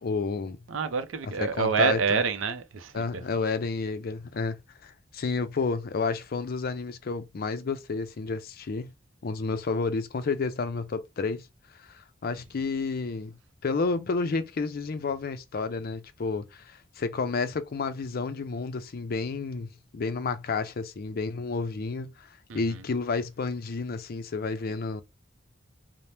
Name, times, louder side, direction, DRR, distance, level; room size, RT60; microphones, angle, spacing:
voice 1, 0.0-0.6 1.4-2.2 2.9-8.9 9.2-11.5 11.8-13.3 13.6-22.3 22.5-25.0, left 4 dB, 50° left, 0.4 m, -31 dB
voice 2, 0.7-3.0 22.5-22.8, right 5 dB, 85° right, 0.5 m, -27 dB
2.8 x 2.1 x 3.2 m
head